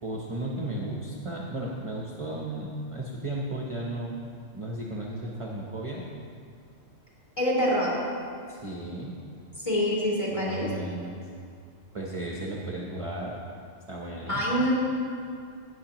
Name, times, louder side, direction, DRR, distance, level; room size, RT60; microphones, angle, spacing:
voice 1, 0.0-4.1 4.5-6.0 8.5-9.1 10.3-11.2 11.9-13.3 13.9-14.5, right 1 dB, 30° right, -2 dB, 0.8 m, -34 dB
voice 2, 7.4-7.9 9.6-10.7 14.3-14.7, equal, 20° left, -7 dB, 2.6 m, -25 dB
17.0 x 6.8 x 3.0 m, 2.3 s
omnidirectional pair, 1.2 m